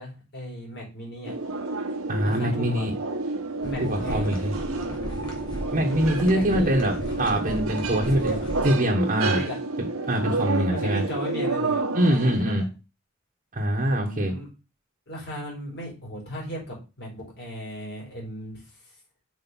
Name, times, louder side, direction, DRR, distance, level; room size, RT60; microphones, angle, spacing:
voice 1, 0.0-1.3 2.2-2.9 3.6-4.4 6.3-6.7 7.9-8.5 9.3-9.6 10.6-12.7 13.9-14.5 15.1-18.6, equal, 55° left, -3 dB, 4.3 m, -36 dB
sound 1, 1.2-12.4, right 2 dB, 85° right, 1.3 m, -30 dB
voice 2, 2.1-2.9 3.8-4.5 5.7-8.4 8.6-9.4 9.8-11.0 11.9-12.7 13.5-14.4, right 1 dB, 40° right, -2 dB, 1.3 m, -24 dB
sound 2, 3.6-8.7, equal, 20° left, 2.9 m, -35 dB
6.1 x 4.9 x 5.5 m, 0.31 s
head